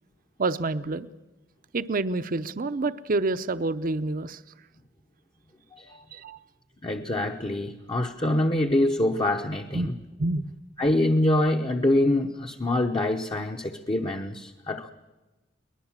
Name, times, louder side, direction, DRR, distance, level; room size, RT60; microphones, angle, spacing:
voice 1, 0.4-1.1 1.7-4.4 6.1-6.4 9.7-9.9 10.2-10.5, right 2 dB, 50° right, 0.7 m, -28 dB
voice 2, 5.7-6.0 6.8-9.9 10.8-14.9, left 1 dB, 30° left, 0.9 m, -25 dB
23.0 x 20.0 x 7.3 m
head